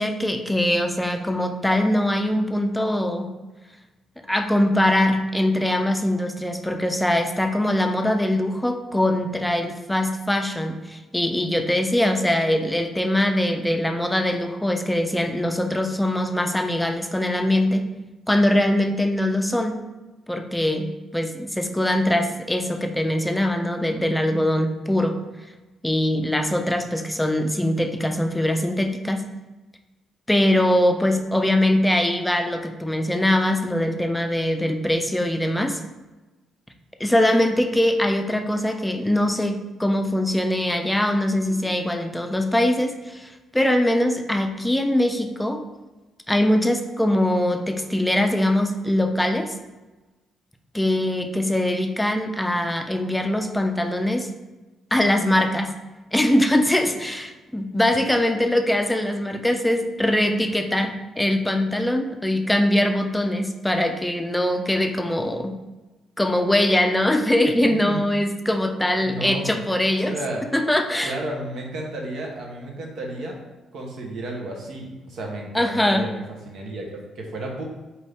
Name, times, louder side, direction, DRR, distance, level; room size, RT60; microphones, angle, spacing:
voice 1, 0.0-3.4 4.3-17.8 18.3-19.8 20.3-25.2 25.8-29.2 30.3-35.8 37.0-45.6 46.3-49.5 50.7-54.3 54.9-55.8 56.1-65.6 66.2-70.1 70.5-71.2 75.5-76.1, left 1 dB, 5° left, 5 dB, 0.4 m, -22 dB
voice 2, 67.7-68.0 68.9-69.6 70.0-70.4 71.0-73.4 73.7-77.6, right 1 dB, 70° right, 0 dB, 1.0 m, -32 dB
4.4 x 2.5 x 3.4 m, 1.1 s
cardioid pair, 90°, 0 cm